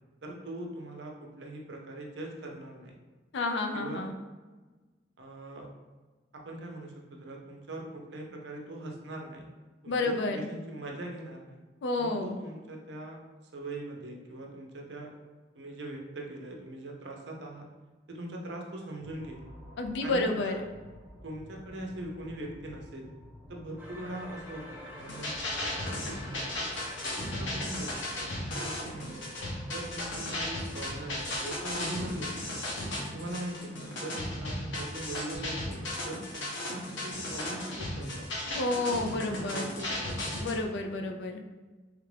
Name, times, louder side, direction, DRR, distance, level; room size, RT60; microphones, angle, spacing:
voice 1, 0.2-3.0 3.7-4.1 5.2-5.7 6.3-9.5 9.8-11.6 12.0-13.2 13.5-15.1 15.5-17.7 18.1-19.4 20.0-20.6 21.2-23.1 23.5-26.7 27.1-29.3 29.7-32.6 33.1-38.4 39.1-40.2, right 1 dB, 65° right, 0 dB, 0.6 m, -41 dB
voice 2, 3.3-4.1 9.9-10.5 11.8-12.3 19.8-20.6 38.5-39.7 40.4-41.4, left 2 dB, 70° left, 4 dB, 0.4 m, -30 dB
sound 1, 19.0-32.4, equal, 15° left, 1.2 m, -51 dB
sound 2, 23.8-30.6, left 1 dB, 10° right, 0.5 m, -49 dB
sound 3, 25.0-40.6, left 1 dB, 90° left, 0.9 m, -35 dB
3.2 x 2.4 x 3.2 m, 1.3 s
head